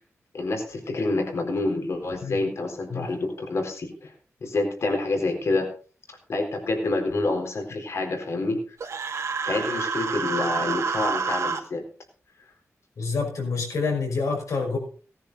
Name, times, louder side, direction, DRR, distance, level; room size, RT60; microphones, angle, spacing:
voice 1, 0.3-4.1 4.4-5.7 6.3-8.9 9.4-11.8, left 2 dB, 60° left, 3 dB, 4.0 m, -27 dB
Human voice, 8.8-11.6, right 5 dB, 70° right, 2.5 m, -28 dB
voice 2, 13.0-14.8, left 4 dB, 80° left, 2 dB, 5.8 m, -27 dB
18.5 x 10.0 x 4.1 m, 0.40 s
wide cardioid pair, 145°, 5 cm